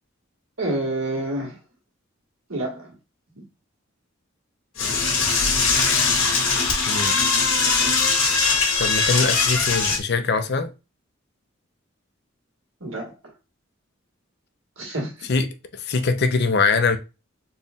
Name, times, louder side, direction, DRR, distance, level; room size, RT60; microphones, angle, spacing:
voice 1, 0.6-1.6 2.5-2.9 3.4-3.5 12.8-13.3 14.8-15.3, right 1 dB, 80° right, 1.8 m, -28 dB
Door / Toilet flush, 4.8-10.0, left 4 dB, 85° left, 1.7 m, -21 dB
voice 2, 6.9-7.2 8.8-10.7 15.3-17.0, left 4 dB, 50° left, 0.6 m, -22 dB
4.2 x 2.3 x 3.6 m
head